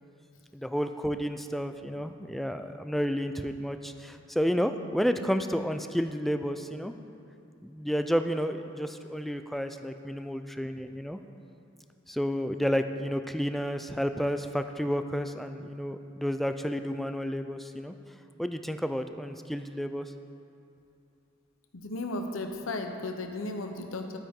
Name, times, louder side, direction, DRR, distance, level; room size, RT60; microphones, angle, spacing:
voice 1, 0.5-6.9 7.6-11.2 12.1-17.9 18.4-20.1, equal, ahead, 7 dB, 0.3 m, -31 dB
voice 2, 21.7-24.2, left 2 dB, 85° left, 5 dB, 0.9 m, -35 dB
12.0 x 8.6 x 3.7 m, 2.7 s
head